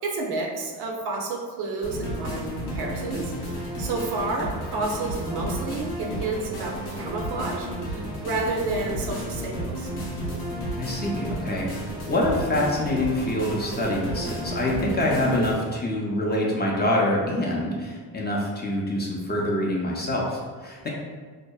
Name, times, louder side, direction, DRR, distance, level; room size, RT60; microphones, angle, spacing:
voice 1, 0.0-9.9 15.1-15.5, right 3 dB, 75° right, 0 dB, 0.6 m, -30 dB
sound 1, 1.8-15.5, equal, 90° left, 0.9 m, -32 dB
voice 2, 10.8-20.9, left 1 dB, 25° left, -3 dB, 0.4 m, -26 dB
2.7 x 2.1 x 2.2 m, 1.5 s
cardioid pair, 80°, 40 cm